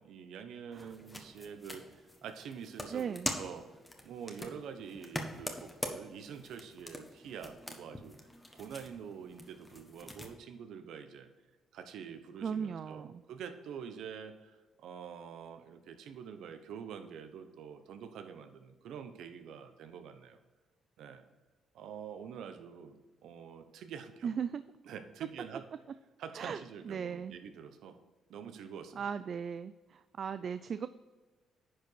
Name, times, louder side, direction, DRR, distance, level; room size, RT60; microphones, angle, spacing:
voice 1, 0.0-1.8 2.2-3.7 4.0-8.1 8.5-11.3 11.7-20.4 21.0-21.3 21.7-24.3 24.9-25.6 26.2-28.0 28.3-29.0, right 7 dB, 80° right, 8 dB, 0.9 m, -46 dB
sound 1, 0.7-10.3, left 1 dB, 10° left, 1.3 m, -44 dB
voice 2, 2.9-3.3 12.4-13.2 24.2-24.6 26.3-27.4 28.9-30.9, right 7 dB, 55° right, 13 dB, 0.3 m, -37 dB
10.0 x 4.9 x 4.6 m, 1.3 s
cardioid pair, 90°, 0 cm